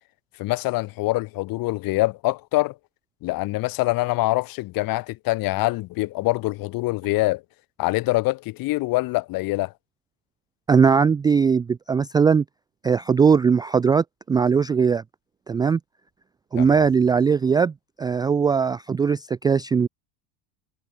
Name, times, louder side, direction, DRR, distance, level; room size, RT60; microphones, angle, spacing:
voice 1, 0.4-2.7 3.2-7.4 7.8-9.7 16.6-16.9, left 20 dB, 45° left, 4.5 m, -24 dB
voice 2, 10.7-12.4 12.8-15.0 15.5-15.8 16.5-19.9, right 6 dB, 10° right, 0.4 m, -20 dB
cardioid pair, 175°, 48 cm